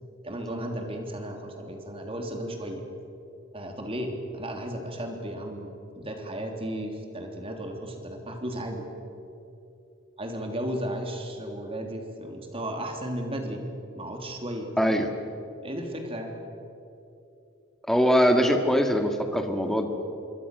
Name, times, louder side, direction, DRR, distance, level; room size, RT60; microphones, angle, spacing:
voice 1, 0.2-2.8 3.5-8.9 10.2-13.7 13.9-15.0 15.6-16.3, right 1 dB, 30° right, 3 dB, 3.4 m, -34 dB
voice 2, 14.8-15.1 17.9-19.9, equal, ahead, 4 dB, 2.0 m, -22 dB
26.5 x 23.0 x 6.7 m, 2.9 s
head